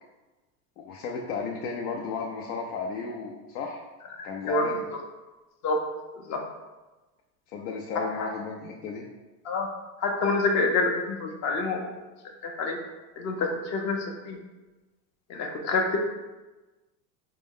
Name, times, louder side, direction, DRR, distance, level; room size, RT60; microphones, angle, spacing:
voice 1, 0.8-3.8 4.2-4.9 7.5-9.1, left 5 dB, 75° left, 0 dB, 0.7 m, -34 dB
voice 2, 4.2-4.6 5.6-5.8 6.3-6.4 8.0-8.3 9.4-9.7 10.0-11.8 12.4-12.8 13.2-14.4 15.3-16.0, left 3 dB, 35° left, 3 dB, 0.6 m, -27 dB
4.8 x 2.2 x 3.6 m, 1.2 s
supercardioid pair, 110°, 48 cm